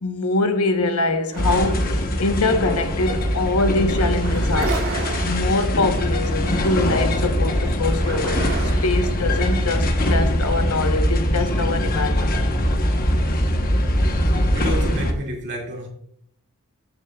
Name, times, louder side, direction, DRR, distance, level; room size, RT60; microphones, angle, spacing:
voice 1, 0.0-4.8 5.2-12.4, left 2 dB, 80° left, 1.0 m, -24 dB
sound 1, 1.3-8.9, right 3 dB, 75° right, 2.4 m, -34 dB
sound 2, 1.4-15.1, equal, 40° left, 1.0 m, -22 dB
voice 2, 13.8-14.1 14.5-15.9, equal, 50° right, 2.3 m, -30 dB
13.0 x 6.7 x 2.3 m
head